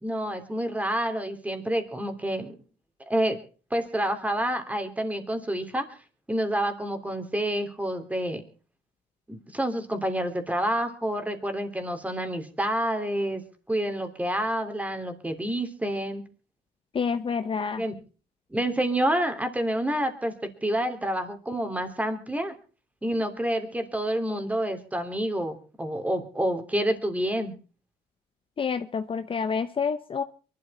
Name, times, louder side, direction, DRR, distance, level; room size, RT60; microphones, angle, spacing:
voice 1, 0.0-2.5 3.1-3.4 3.7-6.0 6.3-8.4 9.3-13.4 13.7-16.2 17.8-17.9 18.5-22.5 23.0-27.5, right 1 dB, 10° right, 3.1 m, -28 dB
voice 2, 16.9-17.8 28.6-30.2, left 6 dB, 30° left, 0.9 m, -28 dB
23.5 x 12.5 x 4.3 m
cardioid pair, 110°, 17 cm